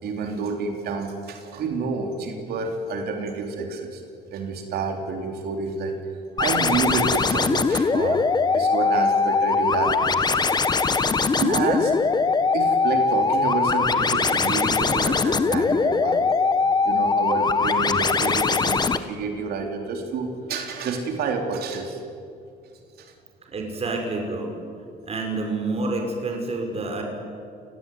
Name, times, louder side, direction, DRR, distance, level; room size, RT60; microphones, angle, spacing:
voice 1, 0.0-4.0 4.3-6.0 6.3-8.2 8.5-10.6 11.4-11.9 12.5-16.3 16.9-22.0 23.0-23.1, right 4 dB, 70° right, 3 dB, 4.0 m, -29 dB
sound 1, 6.4-19.0, left 4 dB, 25° left, 1.4 m, -21 dB
voice 2, 23.5-24.5 25.0-27.0, right 3 dB, 35° right, 2 dB, 5.9 m, -28 dB
29.5 x 19.0 x 9.6 m, 2.4 s
cardioid pair, 110°, 17 cm